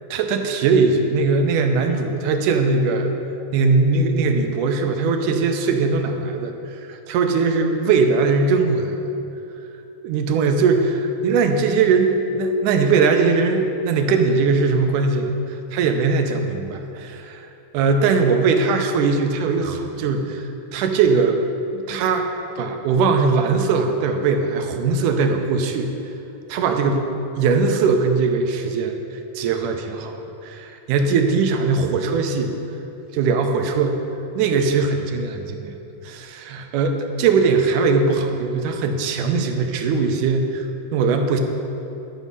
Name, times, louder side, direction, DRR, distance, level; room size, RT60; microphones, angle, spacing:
voice 1, 0.1-3.1 3.5-6.5 6.9-9.0 10.0-17.4 17.7-21.4 21.7-25.9 26.5-27.0 27.4-29.0 29.4-32.6 33.1-34.0 34.4-35.7 36.0-40.6 40.9-41.4, right 4 dB, 85° right, 5 dB, 2.2 m, -20 dB
12.0 x 7.2 x 5.4 m, 2.8 s
omnidirectional pair, 3.7 m